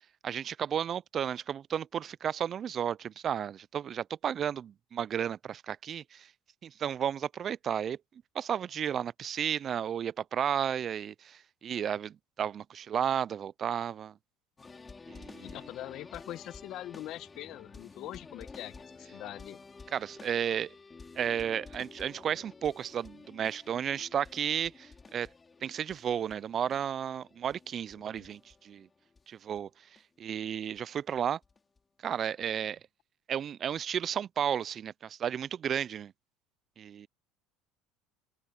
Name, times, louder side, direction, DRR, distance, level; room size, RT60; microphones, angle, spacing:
voice 1, 0.2-6.3 6.6-8.0 8.3-14.2 15.1-15.6 19.9-20.7 21.2-25.3 25.6-28.9 29.3-29.7 30.2-31.4 32.0-32.8 33.3-36.1 36.8-37.1, right 9 dB, 40° right, 0.4 m, -33 dB
sound 1, 14.6-29.2 29.6-29.7 30.0-30.1 30.8-30.9 31.2-31.8 32.4-32.5, left 4 dB, 20° left, 4.8 m, -51 dB
voice 2, 15.4-19.6 28.2-28.3, left 14 dB, 60° left, 1.3 m, -43 dB
supercardioid pair, 90°, 0 cm